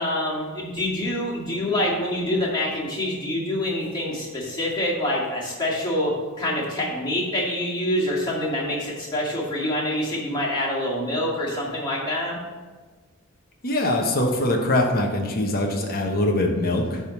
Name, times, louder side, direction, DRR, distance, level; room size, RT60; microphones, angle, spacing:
voice 1, 0.0-12.4, left 1 dB, 20° left, -5 dB, 2.3 m, -26 dB
voice 2, 13.6-17.0, left 1 dB, 45° left, 1 dB, 0.9 m, -23 dB
10.5 x 3.6 x 7.1 m, 1.4 s
head